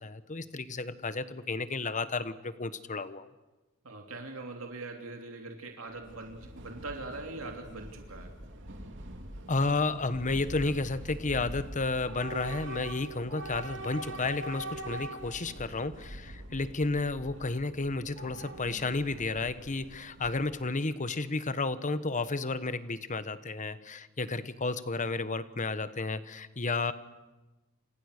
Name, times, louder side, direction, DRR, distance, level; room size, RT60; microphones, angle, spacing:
voice 1, 0.0-3.3 9.5-26.9, left 3 dB, 35° left, 13 dB, 1.2 m, -32 dB
voice 2, 3.8-8.4, right 2 dB, 80° right, 3 dB, 3.0 m, -42 dB
Train / Subway metro underground, 5.9-20.7, right 1 dB, 60° right, 3.2 m, -43 dB
29.0 x 27.0 x 6.7 m, 1.1 s
head